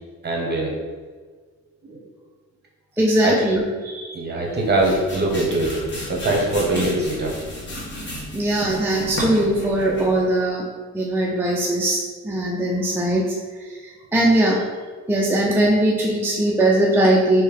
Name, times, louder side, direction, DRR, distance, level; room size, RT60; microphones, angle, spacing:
voice 1, 0.2-0.7 1.8-2.0 3.2-3.3 4.1-5.8 6.1-7.3, right 2 dB, 35° right, -2 dB, 1.0 m, -22 dB
voice 2, 3.0-4.2 8.3-10.7 10.9-14.6 15.1-17.4, right 1 dB, 5° right, -4 dB, 0.5 m, -20 dB
sound 1, 4.4-10.2, left 1 dB, 40° left, 1.1 m, -33 dB
3.4 x 2.8 x 3.3 m, 1.5 s
cardioid pair, 90°, 30 cm